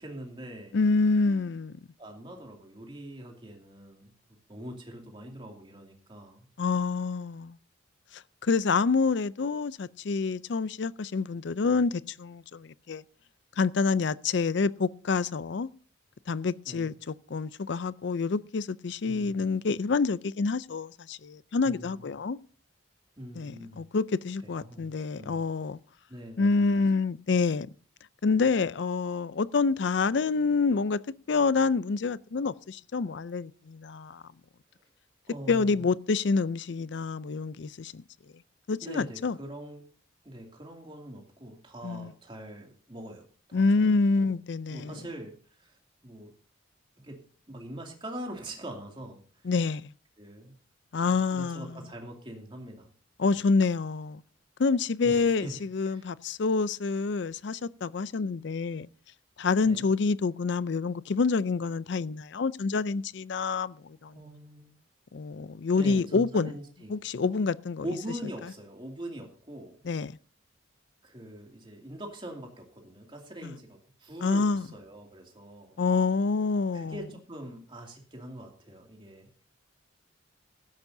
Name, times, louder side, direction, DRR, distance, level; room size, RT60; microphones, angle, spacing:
voice 1, 0.0-0.8 2.0-4.1 4.5-6.5 16.6-16.9 19.0-19.5 21.6-22.1 23.2-23.8 24.4-25.4 26.1-26.8 34.8-34.9 35.3-35.8 38.8-39.8 40.2-44.3 44.7-46.3 47.0-47.2 47.5-49.5 50.2-50.5 51.1-52.9 53.3-53.4 55.0-56.1 59.6-59.9 64.1-64.7 65.7-66.9 67.3-67.4 67.8-69.8 71.0-75.8 76.7-79.3, right 1 dB, 25° right, 2.5 m, -43 dB
voice 2, 0.7-1.8 6.6-7.6 8.1-13.0 13.6-15.7 16.3-22.4 23.3-25.8 26.4-27.7 28.2-31.0 31.3-34.2 35.5-38.0 38.7-39.4 41.8-42.1 43.5-45.0 49.4-49.9 50.9-51.8 53.2-54.2 54.6-58.9 59.4-64.2 65.1-66.5 66.9-67.8 69.9-70.2 73.4-73.5 74.2-74.7 75.8-76.9, left 4 dB, 60° left, 0.4 m, -27 dB
16.0 x 13.0 x 2.7 m
head